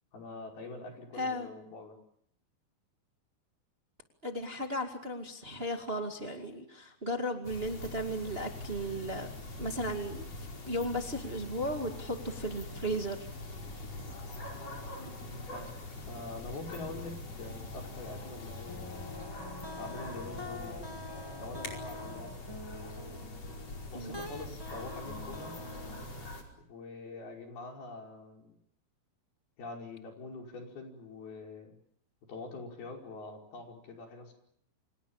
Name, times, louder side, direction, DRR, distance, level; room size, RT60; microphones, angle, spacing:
voice 1, 0.1-2.0 15.0-19.1 19.7-21.0 21.4-22.4 23.9-25.6 26.7-28.6 29.6-31.7 32.3-34.3, left 3 dB, 85° left, 2 dB, 7.3 m, -45 dB
voice 2, 1.2-1.5 4.2-9.3 9.6-13.3 23.9-24.2, equal, 20° right, 4 dB, 1.9 m, -35 dB
sound 1, 7.4-26.4, left 2 dB, 40° left, 6.0 m, -43 dB
sound 2, 18.7-26.3, left 1 dB, 15° left, 0.7 m, -46 dB
30.0 x 26.0 x 7.3 m, 0.67 s
omnidirectional pair, 4.3 m